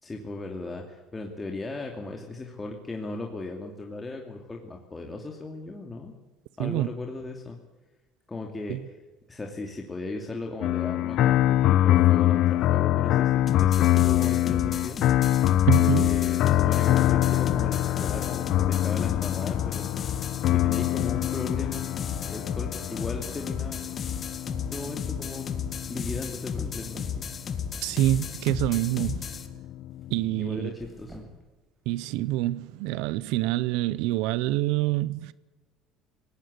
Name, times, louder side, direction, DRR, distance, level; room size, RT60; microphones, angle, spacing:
voice 1, 0.0-6.1 6.6-7.6 8.3-8.8 9.3-15.0 15.8-19.9 20.5-21.9 22.3-23.8 24.6-25.6 25.9-27.3 30.4-31.3, left 3 dB, 20° left, 2.6 m, -37 dB
voice 2, 6.6-6.9 8.7-8.8 15.7-16.1 27.8-29.3 30.1-30.7 31.9-35.3, right 15 dB, 80° right, 0.6 m, -26 dB
sound 1, 10.6-27.7 28.5-30.4, left 14 dB, 60° left, 0.6 m, -24 dB
sound 2, 13.5-29.5, left 7 dB, 40° left, 2.0 m, -34 dB
sound 3, 19.4-20.1 21.1-22.0 23.0-23.7 24.3-25.1 25.5-25.7 26.6-27.3 27.7-28.3 29.0-29.5 29.9-30.2 30.7-31.6, equal, 10° right, 5.5 m, -49 dB
20.0 x 17.5 x 8.1 m
supercardioid pair, 105°, 0 cm